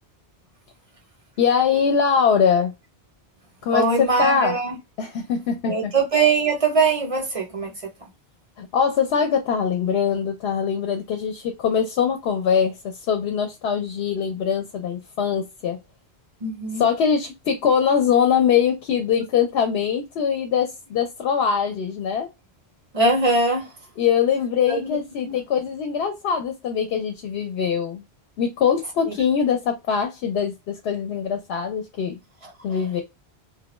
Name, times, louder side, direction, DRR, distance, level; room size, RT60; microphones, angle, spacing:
voice 1, 1.4-2.7 3.6-4.6 5.0-5.9 8.6-15.8 16.8-22.3 24.0-28.0 28.4-32.2 32.6-33.0, left 7 dB, 75° left, 0.8 m, -22 dB
voice 2, 3.7-4.8 5.7-7.9 16.4-16.9 22.9-23.7 24.7-25.0 25.2-25.3 29.1-29.2, right 3 dB, 40° right, 0.6 m, -21 dB
2.1 x 2.1 x 3.0 m
omnidirectional pair, 1.1 m